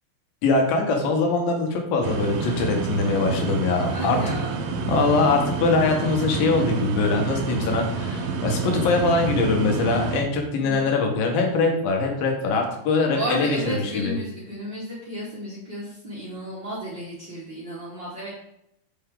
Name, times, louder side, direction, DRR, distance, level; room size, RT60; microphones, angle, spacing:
voice 1, 0.4-4.3 4.9-14.1, left 3 dB, 80° left, 2 dB, 2.9 m, -22 dB
sound 1, 2.0-10.2, right 5 dB, 85° right, 1.5 m, -28 dB
voice 2, 3.9-4.5 10.6-10.9 13.1-18.3, right 1 dB, 45° right, -7 dB, 1.6 m, -33 dB
6.0 x 5.7 x 3.7 m, 0.80 s
omnidirectional pair, 4.1 m